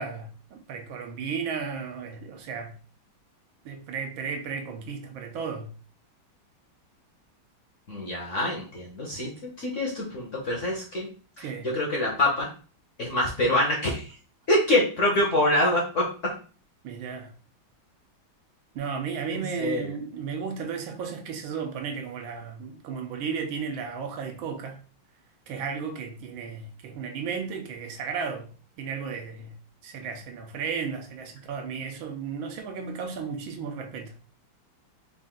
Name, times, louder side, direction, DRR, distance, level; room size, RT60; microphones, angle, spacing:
voice 1, 0.0-2.8 3.6-5.7 11.4-11.7 16.8-17.3 18.7-24.8 25.5-28.5 28.8-29.6 29.8-34.1, right 6 dB, 80° right, 1.5 m, -34 dB
voice 2, 7.9-11.1 11.4-12.5 13.0-14.0 14.5-16.3 19.3-19.9, left 1 dB, 55° left, 0.9 m, -25 dB
4.3 x 2.5 x 3.7 m
omnidirectional pair, 2.2 m